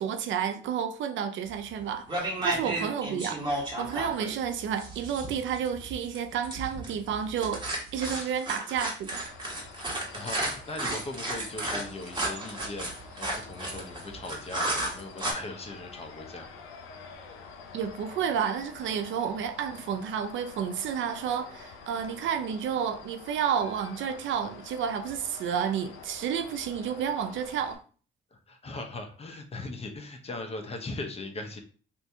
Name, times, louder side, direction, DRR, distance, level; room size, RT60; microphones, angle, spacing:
voice 1, 0.0-7.7 7.9-9.3 17.7-27.8, right 8 dB, 75° right, 0.5 m, -31 dB
sound 1, 1.5-1.8 2.1-15.3, right 1 dB, 20° right, 1.3 m, -33 dB
voice 2, 2.5-2.9 8.2-8.3 9.8-16.5 28.3-31.6, left 2 dB, 30° left, 0.8 m, -39 dB
sound 2, 9.1-27.7, left 5 dB, 85° left, 0.6 m, -47 dB
2.8 x 2.7 x 3.5 m
cardioid pair, 90°, 20 cm